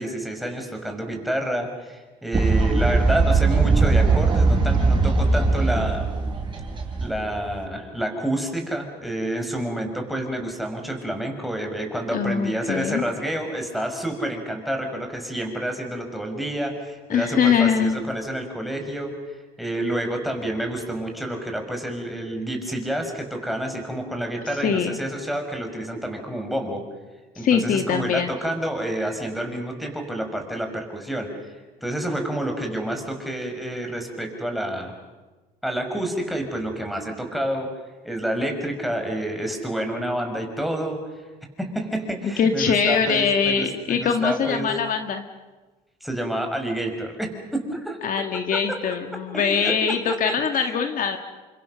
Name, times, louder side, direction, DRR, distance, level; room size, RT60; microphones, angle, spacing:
voice 1, 0.0-6.1 7.0-26.8 27.4-31.5 31.8-34.9 35.6-37.7 38.0-41.0 41.6-44.7 46.0-48.3 48.5-48.8 49.3-50.2 50.5-50.8, right 1 dB, ahead, 3 dB, 5.8 m, -29 dB
Fowl, 2.3-7.6, right 3 dB, 30° right, 6.1 m, -20 dB
voice 2, 12.1-13.0 17.1-18.0 24.6-25.0 27.4-28.3 42.2-45.2 48.0-51.2, left 6 dB, 55° left, 6 dB, 2.0 m, -22 dB
30.0 x 25.5 x 6.5 m, 1.2 s
cardioid pair, 110°, 17 cm